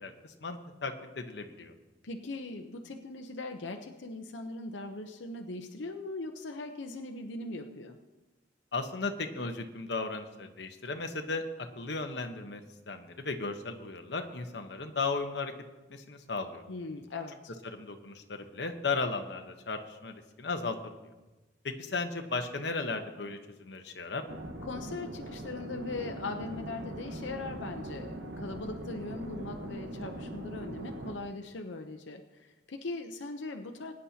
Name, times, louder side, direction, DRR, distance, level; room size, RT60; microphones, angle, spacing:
voice 1, 0.0-1.7 8.7-12.6 12.9-15.5 15.9-16.6 17.7-21.1 21.6-24.3, left 3 dB, 65° left, 5 dB, 1.0 m, -36 dB
voice 2, 2.0-8.0 16.7-17.5 24.6-33.9, left 3 dB, 85° left, 4 dB, 0.8 m, -40 dB
sound 1, 24.3-31.2, right 1 dB, 75° right, 1.2 m, -41 dB
22.5 x 9.9 x 2.8 m, 1.1 s
head